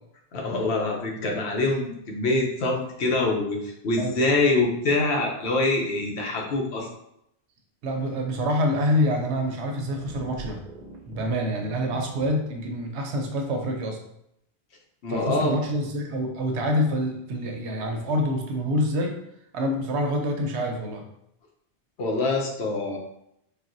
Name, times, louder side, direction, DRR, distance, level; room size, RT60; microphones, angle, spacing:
voice 1, 0.3-6.9 15.0-15.5 22.0-23.0, left 2 dB, 75° left, 0 dB, 1.0 m, -25 dB
voice 2, 7.8-10.6 11.1-14.0 15.1-19.2 19.5-21.0, equal, 80° right, 3 dB, 0.9 m, -26 dB
sound 1, 9.9-12.3, right 2 dB, 50° right, 0.7 m, -42 dB
4.0 x 2.2 x 2.5 m, 0.77 s
omnidirectional pair, 1.1 m